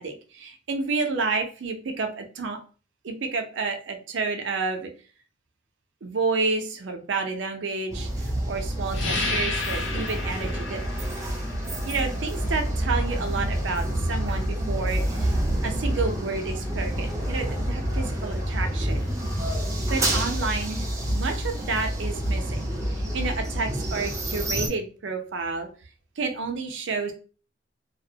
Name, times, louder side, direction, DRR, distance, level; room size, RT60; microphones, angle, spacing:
voice 1, 0.0-2.6 3.0-4.9 6.0-11.1 11.9-15.3 15.6-19.1 19.9-25.7 26.2-27.1, right 4 dB, 75° right, 5 dB, 0.5 m, -30 dB
sound 1, 7.9-24.7, right 1 dB, 15° right, 0.5 m, -28 dB
sound 2, 8.9-19.2, left 3 dB, 75° left, 0.5 m, -37 dB
2.3 x 2.1 x 2.7 m, 0.37 s
head